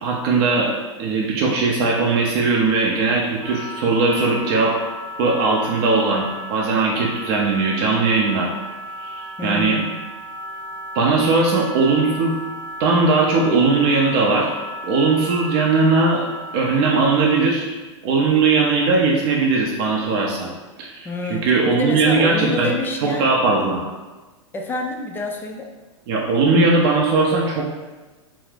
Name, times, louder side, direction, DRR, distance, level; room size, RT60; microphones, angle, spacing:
voice 1, 0.0-4.8 5.2-8.5 9.0-9.8 10.9-12.3 12.8-14.5 14.8-16.2 16.5-17.7 18.0-20.5 20.8-22.7 23.0-23.9 26.1-27.7, right 3 dB, 45° right, -2 dB, 0.5 m, -19 dB
Wind instrument woodwind instrument, 3.4-17.5, equal, 65° right, 0.8 m, -34 dB
voice 2, 9.4-10.0 21.0-23.2 24.5-25.7, left 3 dB, 15° left, 1 dB, 0.3 m, -28 dB
2.5 x 2.4 x 3.3 m, 1.2 s
hypercardioid pair, 110°, 16 cm